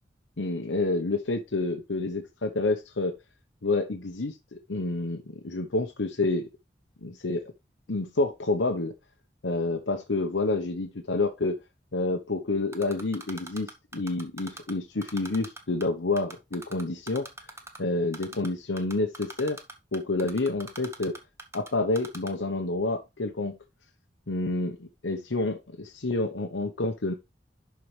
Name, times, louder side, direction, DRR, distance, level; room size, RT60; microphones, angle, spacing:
voice 1, 0.4-3.1 3.6-6.5 7.0-7.4 7.9-8.9 9.4-11.6 11.9-17.5 17.8-19.6 19.9-21.2 21.5-23.6 24.3-27.1, left 2 dB, 90° left, 4 dB, 1.0 m, -29 dB
Typing, 12.7-14.7 15.0-15.9 16.2-17.8 18.1-18.5 18.8-21.7 22.0-22.3, right 2 dB, 15° right, 1.1 m, -41 dB
11.5 x 4.6 x 3.3 m, 0.23 s
head